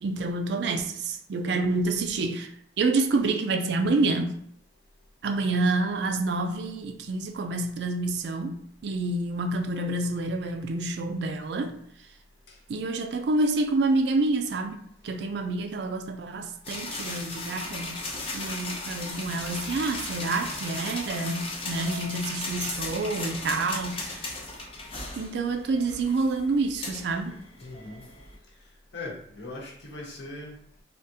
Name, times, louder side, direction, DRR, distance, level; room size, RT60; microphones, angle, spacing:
voice 1, 0.0-2.5 2.8-4.4 5.2-11.7 12.7-14.8 15.0-18.0 18.3-24.3 25.2-27.4, right 3 dB, 60° right, 0.4 m, -28 dB
Bank Coin Count Deposit Machine, 16.6-28.4, left 2 dB, 30° left, 0.5 m, -36 dB
voice 2, 27.6-28.1 28.9-30.8, left 2 dB, 70° left, 0.9 m, -40 dB
3.5 x 2.4 x 2.7 m
head